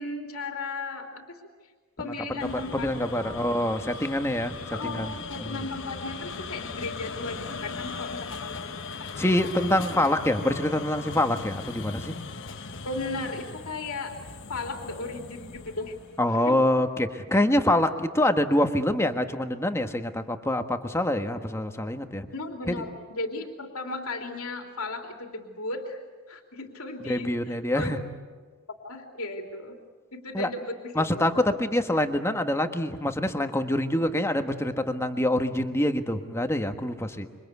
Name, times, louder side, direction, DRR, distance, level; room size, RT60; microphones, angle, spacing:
voice 1, 0.0-1.4 2.0-3.7 4.7-9.1 9.4-10.4 12.8-14.2 14.5-15.9 16.3-16.6 22.3-27.9 28.8-29.8 30.1-31.3, left 2 dB, 80° left, 3 dB, 3.0 m, -36 dB
sound 1, 2.4-16.2, left 4 dB, 55° left, 1.3 m, -39 dB
voice 2, 2.4-5.1 5.4-5.6 9.2-12.1 16.2-22.3 22.7-22.8 27.1-28.0 30.3-30.5 30.9-37.3, left 1 dB, 10° left, 7 dB, 1.4 m, -25 dB
27.0 x 24.5 x 8.4 m, 1.5 s
head